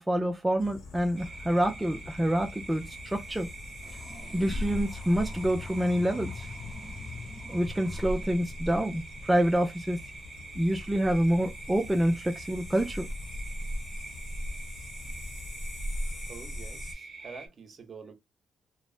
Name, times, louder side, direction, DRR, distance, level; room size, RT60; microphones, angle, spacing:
voice 1, 0.0-3.5 4.3-6.5 7.5-10.0 10.6-13.1, right 1 dB, 10° right, 0.4 m, -27 dB
sound 1, 0.6-16.9, left 1 dB, 70° left, 1.0 m, -40 dB
sound 2, 1.2-17.5, right 3 dB, 25° right, 1.0 m, -46 dB
sound 3, 3.8-8.8, left 4 dB, 10° left, 1.0 m, -42 dB
voice 2, 16.3-18.1, right 5 dB, 45° right, 0.8 m, -47 dB
3.1 x 2.0 x 2.4 m
cardioid pair, 90°, 0 cm